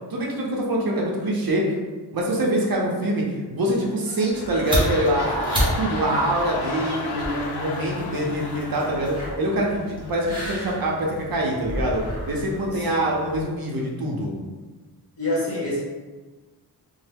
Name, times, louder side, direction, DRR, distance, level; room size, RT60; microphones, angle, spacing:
voice 1, 0.1-1.7 2.1-14.3, right 1 dB, 60° right, -2 dB, 0.6 m, -25 dB
sound 1, 3.7-10.3 10.8-10.9, left 2 dB, 75° left, 0.5 m, -34 dB
sound 2, 4.3-13.4, equal, 10° right, 0.9 m, -32 dB
voice 2, 12.7-13.1 15.2-15.8, left 1 dB, 35° left, -7 dB, 1.0 m, -26 dB
3.1 x 2.0 x 3.3 m, 1.3 s
wide cardioid pair, 160°, 40 cm